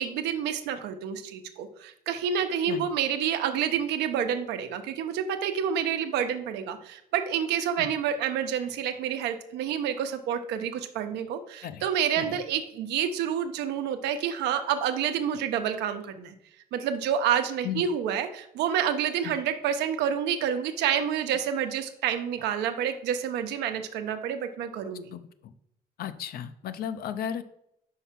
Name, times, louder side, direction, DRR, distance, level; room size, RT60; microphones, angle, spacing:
voice 1, 0.0-16.3 16.7-25.1, right 8 dB, 85° right, 7 dB, 0.8 m, -28 dB
voice 2, 25.1-25.5 26.0-27.4, left 9 dB, 65° left, 11 dB, 0.6 m, -35 dB
5.6 x 4.6 x 5.8 m, 0.76 s
cardioid pair, 110°, 17 cm